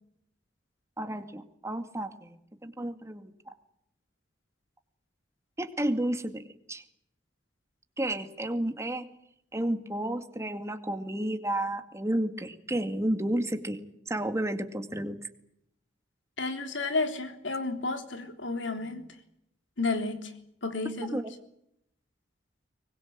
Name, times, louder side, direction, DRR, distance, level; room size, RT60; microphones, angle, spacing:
voice 1, 1.0-2.4 2.6-3.3 5.6-6.4 6.7-6.8 8.0-9.1 9.5-13.8 14.1-15.2 21.1-21.2, right 1 dB, 15° right, 2.1 m, -31 dB
voice 2, 16.4-19.0 19.8-20.3 20.6-21.2, left 3 dB, 80° left, 3.4 m, -31 dB
24.0 x 21.0 x 8.8 m
head